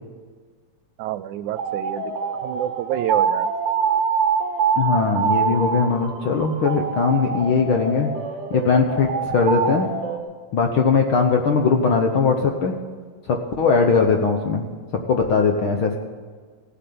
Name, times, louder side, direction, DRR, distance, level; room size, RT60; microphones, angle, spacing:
voice 1, 1.0-2.1 2.4-3.5, right 12 dB, 85° right, 14 dB, 2.0 m, -28 dB
sound 1, 1.5-10.2, right 6 dB, 45° right, 1.8 m, -25 dB
voice 2, 4.8-8.1 8.5-9.9 10.5-12.8 13.3-14.7 15.1-16.0, left 5 dB, 60° left, 3 dB, 1.4 m, -20 dB
16.5 x 7.9 x 9.5 m, 1.5 s
omnidirectional pair, 3.4 m